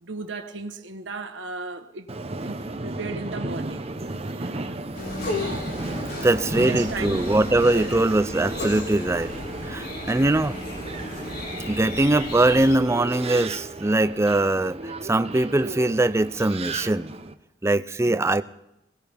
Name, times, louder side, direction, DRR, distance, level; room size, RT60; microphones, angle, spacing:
voice 1, 0.0-2.1 2.4-2.5 2.8-3.8 4.3-4.9 6.1-7.2 7.6-7.9 11.0-11.1 18.0-18.3, right 3 dB, 85° right, 1.2 m, -36 dB
Subway metro underground, 2.1-17.3, right 2 dB, 35° right, 0.8 m, -34 dB
sound 1, 4.9-12.8, left 1 dB, 55° left, 2.9 m, -35 dB
sound 2, 5.2-5.9 8.6-9.2 10.1-10.2, left 3 dB, 80° left, 3.3 m, -31 dB
voice 2, 6.2-9.3 9.6-10.6 11.5-17.1 17.6-18.4, right 2 dB, 15° right, 0.5 m, -22 dB
21.5 x 18.5 x 3.5 m
head